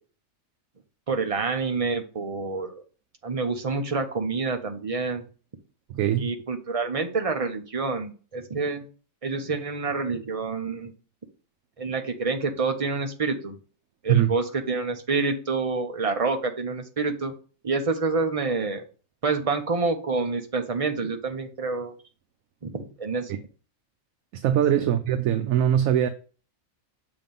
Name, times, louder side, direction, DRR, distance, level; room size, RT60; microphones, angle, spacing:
voice 1, 1.1-2.8 3.2-5.2 6.2-8.8 9.2-10.9 11.8-13.6 14.0-17.3 17.6-18.8 19.2-21.9 22.6-23.3 24.8-24.9, right 4 dB, 30° right, 0.7 m, -27 dB
voice 2, 5.9-6.3 14.1-14.3 23.3-23.4 24.3-26.1, right 10 dB, 75° right, 1.0 m, -22 dB
7.0 x 3.0 x 5.2 m
omnidirectional pair, 1.4 m